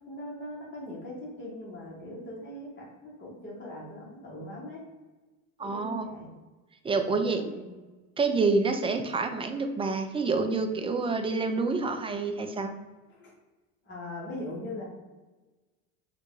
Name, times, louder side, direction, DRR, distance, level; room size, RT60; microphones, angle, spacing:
voice 1, 0.0-4.8 5.6-6.3 7.1-7.7 13.1-13.3 13.8-14.8, left 1 dB, 25° left, -5 dB, 1.5 m, -41 dB
voice 2, 5.6-6.1 6.8-7.4 8.2-12.7, right 3 dB, 15° right, 6 dB, 0.4 m, -27 dB
3.7 x 2.5 x 4.5 m, 1.2 s
supercardioid pair, 90°, 41 cm